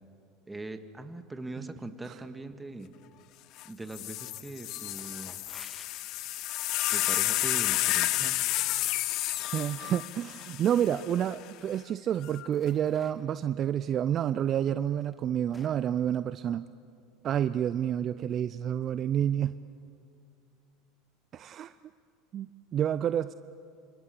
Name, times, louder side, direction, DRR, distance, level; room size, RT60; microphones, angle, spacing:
voice 1, 0.5-2.9 3.7-5.4 6.9-8.4, right 2 dB, 10° right, 8 dB, 2.0 m, -41 dB
sound 1, 3.6-3.7 3.9-11.3 12.2-12.7, left 16 dB, 55° left, 0.7 m, -31 dB
sound 2, 4.2-4.6 4.9-6.6 7.4-8.4 9.0-10.5 11.5-11.6 12.1-13.5 14.4-14.5 15.0-15.9, left 2 dB, 15° left, 2.4 m, -55 dB
voice 2, 9.5-16.6 17.2-19.6 21.3-21.7 22.3-23.3, right 10 dB, 40° right, 14 dB, 0.6 m, -29 dB
28.5 x 26.5 x 7.2 m, 2.5 s
hypercardioid pair, 75°, 0 cm